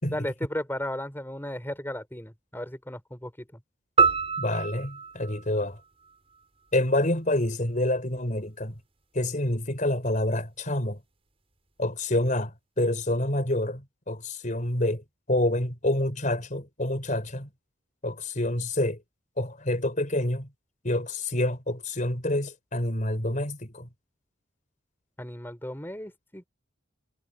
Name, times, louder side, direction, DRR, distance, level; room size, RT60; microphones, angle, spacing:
voice 1, 0.1-3.6 25.2-26.5, left 1 dB, 10° left, 5.4 m, -35 dB
sound 1, 4.0-6.4, right 5 dB, 30° right, 6.5 m, -26 dB
voice 2, 4.4-5.8 6.7-8.7 9.1-11.0 11.8-17.5 18.0-19.0 19.4-20.5 20.8-23.9, left 1 dB, 40° left, 5.1 m, -27 dB
head